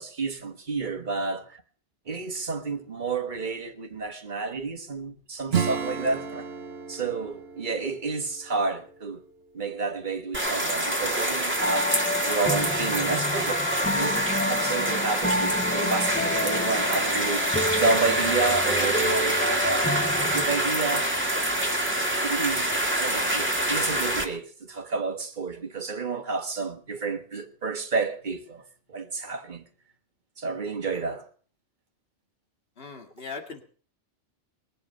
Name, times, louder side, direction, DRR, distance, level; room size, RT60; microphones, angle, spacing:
voice 1, 0.0-1.6 2.1-6.5 6.9-9.2 9.5-12.0 12.2-13.7 13.9-21.1 22.1-22.7 23.0-28.6 28.9-29.6 30.4-31.3, right 4 dB, 40° right, 1.6 m, -30 dB
Acoustic guitar / Strum, 5.5-9.8, right 6 dB, 60° right, 1.3 m, -33 dB
sound 1, 10.3-24.2, right 1 dB, 10° right, 2.4 m, -26 dB
sound 2, 11.6-20.5, left 1 dB, 15° left, 0.5 m, -30 dB
voice 2, 32.8-33.6, left 4 dB, 55° left, 2.3 m, -39 dB
21.5 x 7.9 x 6.5 m
omnidirectional pair, 1.2 m